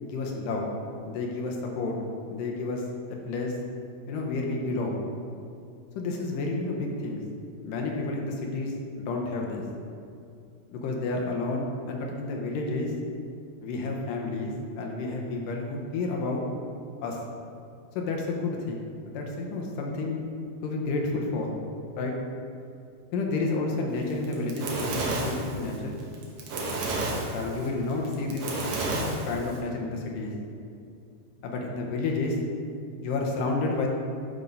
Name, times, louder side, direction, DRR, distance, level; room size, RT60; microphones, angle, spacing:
voice 1, 0.0-0.7 1.0-2.0 2.3-2.8 3.3-3.6 4.1-5.0 6.0-7.2 7.6-9.6 10.7-12.9 13.6-16.4 17.0-17.2 18.0-20.2 20.6-21.6 22.0-22.1 23.1-26.0 27.3-28.6 28.9-30.3 31.4-32.4 33.0-33.9, left 3 dB, 75° left, 0 dB, 2.3 m, -30 dB
Fire, 24.1-29.6, right 2 dB, 70° right, 1.5 m, -31 dB
10.5 x 3.6 x 5.3 m, 2.5 s
omnidirectional pair, 4.2 m